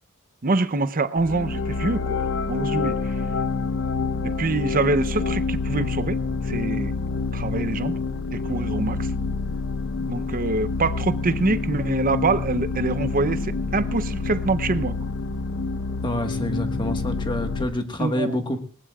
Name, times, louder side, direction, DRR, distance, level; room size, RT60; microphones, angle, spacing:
voice 1, 0.4-2.2 2.5-3.1 4.2-6.2 6.5-6.9 7.3-8.0 8.3-9.1 10.1-15.0 18.0-18.4, right 3 dB, 40° right, 0.7 m, -25 dB
sound 1, 1.2-17.6, left 4 dB, 60° left, 0.9 m, -27 dB
voice 2, 16.0-18.6, left 1 dB, 20° left, 1.5 m, -27 dB
19.5 x 19.0 x 2.4 m
head